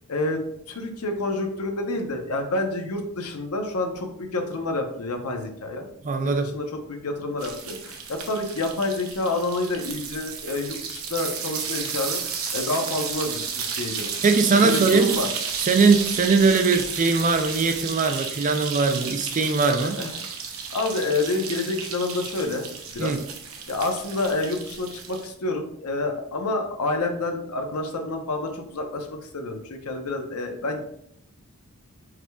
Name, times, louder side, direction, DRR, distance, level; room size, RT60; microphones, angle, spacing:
voice 1, 0.1-0.4 0.7-5.9 6.4-12.2 12.5-14.1 14.5-15.3 19.8-20.1 20.7-23.1 23.7-30.8, left 2 dB, 85° left, 4 dB, 0.8 m, -28 dB
voice 2, 6.0-6.5 14.2-15.2 15.6-20.0 23.0-23.2, right 4 dB, 35° right, 7 dB, 0.4 m, -20 dB
sound 1, 7.4-25.3, right 6 dB, 65° right, 0.8 m, -33 dB
4.8 x 4.7 x 2.3 m, 0.71 s
head